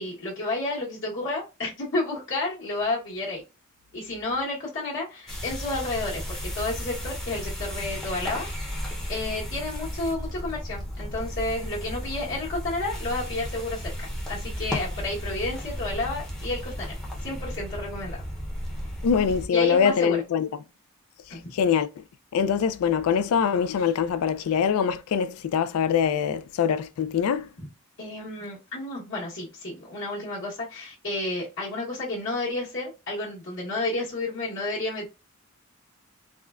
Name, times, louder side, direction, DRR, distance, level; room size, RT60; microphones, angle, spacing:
voice 1, 0.0-3.4 3.9-8.5 9.1-13.9 14.3-16.9 17.2-18.2 19.5-20.2 21.3-21.5 27.6-27.7 28.0-35.1, left 2 dB, 55° left, 1.1 m, -31 dB
sound 1, 5.3-19.5, equal, ahead, 0.6 m, -34 dB
voice 2, 19.0-20.5 21.5-21.9 22.3-27.5, left 7 dB, 80° left, 0.3 m, -23 dB
3.6 x 2.1 x 2.3 m
head